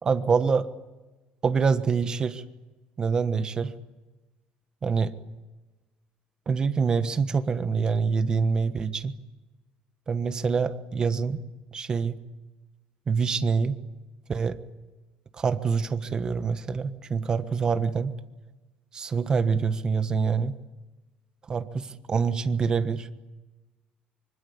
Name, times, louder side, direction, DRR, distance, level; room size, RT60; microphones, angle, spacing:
voice 1, 0.0-0.7 1.4-2.4 3.0-3.7 4.8-5.1 6.5-9.2 10.1-11.4 11.7-12.2 13.1-13.8 14.3-14.6 15.3-18.1 18.9-20.6 21.5-23.1, right 5 dB, 25° right, 10 dB, 1.3 m, -25 dB
25.5 x 24.5 x 8.6 m, 1.1 s
cardioid pair, 170°, 3 cm